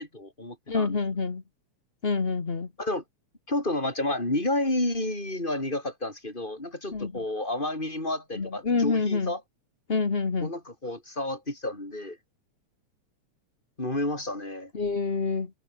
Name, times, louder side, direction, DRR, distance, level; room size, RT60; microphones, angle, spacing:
voice 1, 0.0-1.0 2.8-3.0 3.5-9.4 10.4-12.2 13.8-14.7, left 1 dB, 15° left, 7.3 m, -30 dB
voice 2, 0.7-1.4 2.0-2.7 6.9-7.1 8.3-9.3 9.9-10.5 14.7-15.5, left 4 dB, 30° left, 1.0 m, -27 dB
omnidirectional pair, 3.4 m